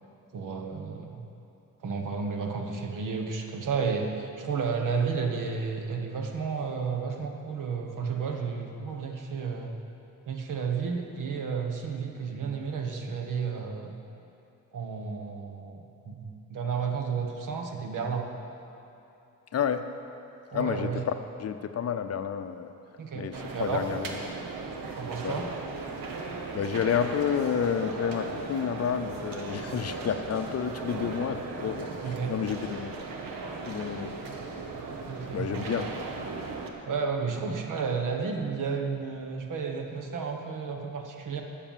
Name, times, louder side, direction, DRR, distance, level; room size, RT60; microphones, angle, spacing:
voice 1, 0.3-1.2 1.8-9.7 10.3-14.0 14.7-18.3 20.5-21.1 23.0-23.8 25.0-25.5 26.0-26.1 32.0-32.3 35.1-35.7 36.9-41.4, right 5 dB, 65° right, 3 dB, 1.4 m, -32 dB
voice 2, 19.5-19.9 20.5-21.1 21.4-22.7 23.1-24.4 25.2-25.4 26.5-32.9 33.7-34.1 35.3-36.0, left 8 dB, 50° left, 9 dB, 0.6 m, -30 dB
sound 1, 23.3-36.7, right 3 dB, 90° right, 1.3 m, -37 dB
12.5 x 7.0 x 7.4 m, 2.8 s
cardioid pair, 125°, 33 cm